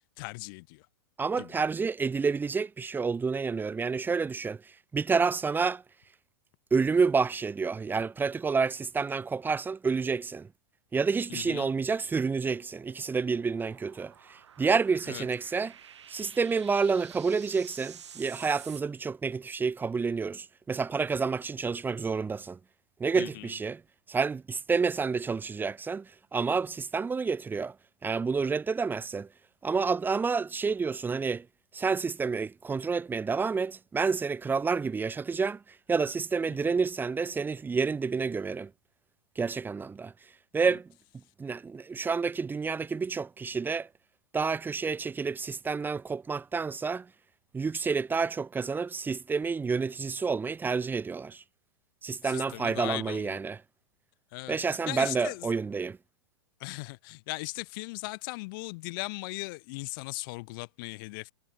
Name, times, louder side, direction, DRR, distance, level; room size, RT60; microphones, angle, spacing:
voice 1, 0.2-0.9 1.4-1.6 11.3-11.7 15.1-15.2 23.1-23.5 52.2-53.4 54.3-54.6 54.9-55.5 56.6-61.3, left 25 dB, 50° left, 0.9 m, -38 dB
voice 2, 1.2-4.6 4.9-5.8 6.7-10.5 10.9-15.7 16.1-22.6 23.0-23.8 24.1-27.7 28.0-29.3 29.6-31.5 31.7-35.6 35.9-38.7 39.4-40.1 40.5-40.9 41.4-43.9 44.3-47.1 47.5-51.4 52.0-53.6 54.5-56.0, right 5 dB, 15° right, 1.4 m, -29 dB
sound 1, 11.3-18.8, right 8 dB, 80° right, 7.3 m, -51 dB
hypercardioid pair, 110°, 15 cm